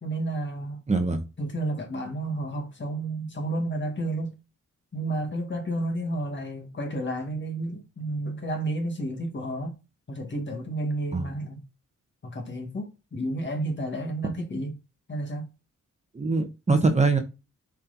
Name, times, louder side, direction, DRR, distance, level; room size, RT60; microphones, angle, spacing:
voice 1, 0.0-0.8 1.4-4.4 4.9-9.8 10.1-11.6 12.2-14.8 15.1-15.5, right 1 dB, 35° left, 1.8 m, -31 dB
voice 2, 0.9-1.2 11.1-11.3 16.1-17.2, right 3 dB, 20° right, 1.0 m, -23 dB
7.5 x 4.5 x 4.0 m
wide cardioid pair, 165°, 32 cm